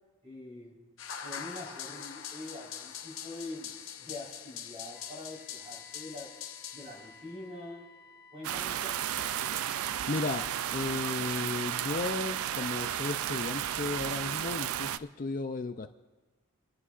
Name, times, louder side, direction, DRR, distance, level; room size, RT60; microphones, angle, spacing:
voice 1, 0.2-0.8 1.1-3.7 4.0-6.4 6.7-7.9 8.3-9.1, left 2 dB, 30° right, -4 dB, 4.0 m, -44 dB
sound 1, 1.0-7.4, left 8 dB, 65° left, 0.9 m, -43 dB
Wind instrument woodwind instrument, 4.9-10.0, left 3 dB, ahead, 2.4 m, -56 dB
sound 2, 8.4-15.0, right 10 dB, 80° right, 0.4 m, -33 dB
voice 2, 10.1-15.9, left 3 dB, 40° left, 8 dB, 0.4 m, -34 dB
28.5 x 11.0 x 2.5 m, 1.2 s
head